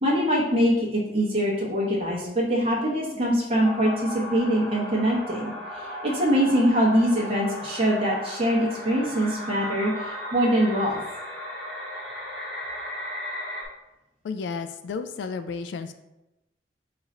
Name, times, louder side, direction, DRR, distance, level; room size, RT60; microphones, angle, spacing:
voice 1, 0.0-11.0, equal, 35° right, -6 dB, 0.9 m, -23 dB
sound 1, 3.5-13.7, equal, 15° left, 1.1 m, -36 dB
voice 2, 14.2-15.9, left 5 dB, 85° left, 8 dB, 0.3 m, -32 dB
4.7 x 2.5 x 4.2 m, 0.95 s
head